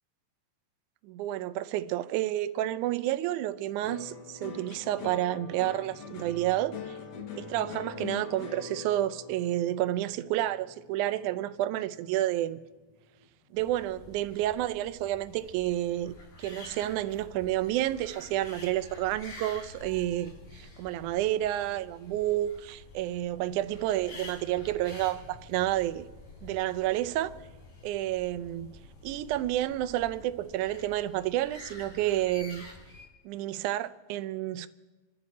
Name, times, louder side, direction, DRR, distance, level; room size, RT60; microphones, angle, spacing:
voice 1, 1.0-7.0 7.4-12.6 13.5-16.1 16.4-26.1 26.4-27.3 27.8-28.7 29.0-32.6 33.3-34.7, right 14 dB, 80° right, 2.0 m, -30 dB
sound 1, 3.8-12.3 12.6-13.3, left 6 dB, 60° left, 2.0 m, -43 dB
sound 2, 13.6-33.1, left 2 dB, 90° left, 5.0 m, -49 dB
28.0 x 11.0 x 4.2 m
omnidirectional pair, 3.7 m